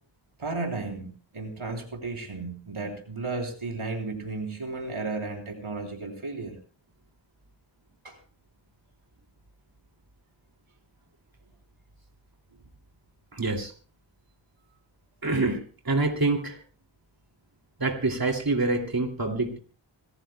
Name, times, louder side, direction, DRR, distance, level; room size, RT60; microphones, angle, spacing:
voice 1, 0.4-6.5 8.0-8.2, right 3 dB, 80° right, 2 dB, 3.5 m, -34 dB
voice 2, 13.3-13.7 15.2-16.6 17.8-19.6, right 3 dB, 45° right, 2 dB, 2.7 m, -26 dB
26.5 x 14.0 x 2.3 m, 0.40 s
wide cardioid pair, 45°, 50 cm